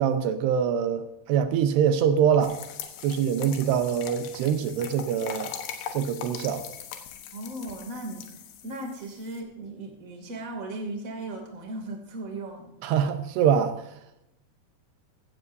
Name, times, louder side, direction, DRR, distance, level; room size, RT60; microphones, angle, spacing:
voice 1, 0.0-2.6 3.0-5.5 5.9-6.6 12.8-13.7, right 8 dB, 80° right, 8 dB, 3.0 m, -24 dB
sound 1, 2.4-9.4, left 8 dB, 85° left, 3.4 m, -40 dB
voice 2, 7.3-13.2, right 2 dB, 25° right, 2 dB, 2.4 m, -37 dB
16.0 x 15.5 x 2.7 m, 0.84 s
omnidirectional pair, 4.7 m